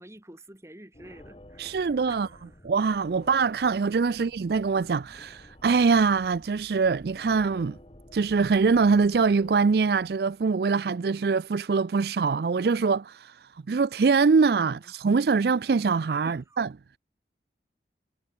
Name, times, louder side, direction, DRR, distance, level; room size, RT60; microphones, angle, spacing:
voice 1, 0.0-2.4 4.1-4.2 14.6-14.8 16.2-16.7, right 1 dB, 15° right, 1.9 m, -48 dB
sound 1, 0.9-10.4, left 1 dB, 30° left, 2.5 m, -52 dB
voice 2, 1.6-2.3 2.6-7.8 8.1-13.4 13.7-16.7, right 5 dB, 60° right, 0.4 m, -23 dB
head